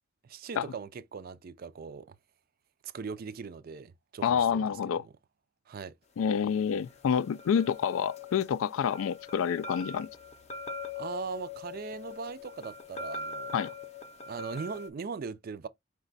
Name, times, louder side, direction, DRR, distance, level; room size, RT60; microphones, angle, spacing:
voice 1, 0.2-2.2 2.8-4.7 5.0-5.1 5.7-6.0 11.0-13.5 14.3-15.7, right 5 dB, 45° right, 0.4 m, -40 dB
voice 2, 4.2-5.0 6.2-10.1 13.5-13.7, left 7 dB, 75° left, 0.3 m, -28 dB
sound 1, 6.5-14.9, left 4 dB, 30° left, 0.6 m, -42 dB
5.1 x 2.2 x 3.9 m
head